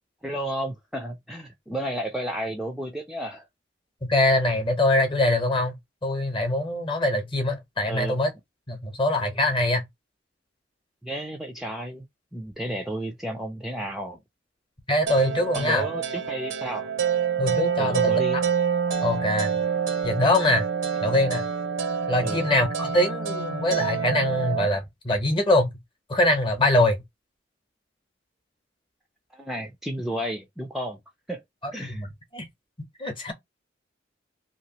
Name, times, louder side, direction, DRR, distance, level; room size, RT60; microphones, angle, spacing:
voice 1, 0.2-3.5 7.8-8.2 11.0-12.1 12.3-14.2 15.5-16.9 17.8-18.4 22.2-22.5 29.3-31.0 31.3-31.4 31.7-32.1, right 1 dB, ahead, 0.5 m, -32 dB
voice 2, 4.1-5.7 6.0-8.3 8.7-9.8 14.9-15.9 17.4-18.5 19.0-19.6 20.0-20.7 21.0-21.4 22.1-25.7 26.1-27.0 31.8-32.1 32.3-32.5 33.0-33.3, left 1 dB, 25° left, 0.9 m, -23 dB
sound 1, 15.1-24.7, right 7 dB, 80° right, 0.7 m, -27 dB
2.9 x 2.4 x 2.7 m
head